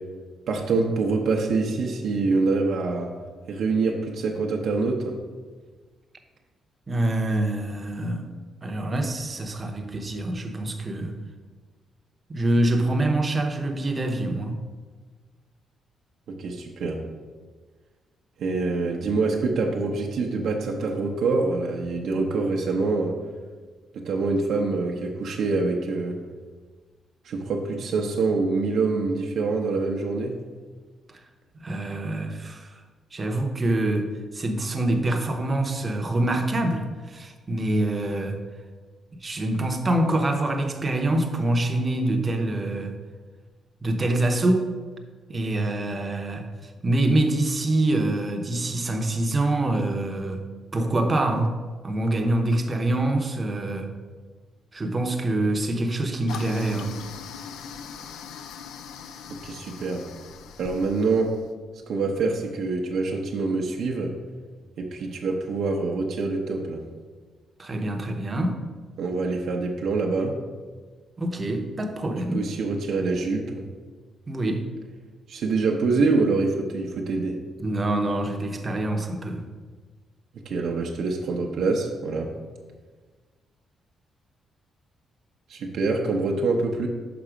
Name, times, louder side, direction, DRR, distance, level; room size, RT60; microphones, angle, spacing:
voice 1, 0.5-3.1 3.5-5.1 16.3-17.0 18.4-23.1 23.9-26.2 27.2-30.4 59.3-60.1 60.6-61.3 61.9-64.1 64.8-66.8 69.0-70.4 72.3-73.6 75.3-77.4 80.4-82.3 85.5-86.9, right 3 dB, 65° right, 1 dB, 0.7 m, -25 dB
voice 2, 6.9-8.3 8.6-11.1 12.3-14.6 31.5-32.7 33.1-38.4 39.2-42.9 43.8-44.7 45.3-50.4 50.7-51.5 51.8-53.9 54.7-57.0 67.6-68.6 71.2-72.4 74.3-74.7 77.6-79.5, right 1 dB, 20° right, 4 dB, 0.7 m, -25 dB
Toilet flush, 56.3-61.5, left 7 dB, 85° left, 0.4 m, -41 dB
6.0 x 5.4 x 4.9 m, 1.4 s
cardioid pair, 145°, 0 cm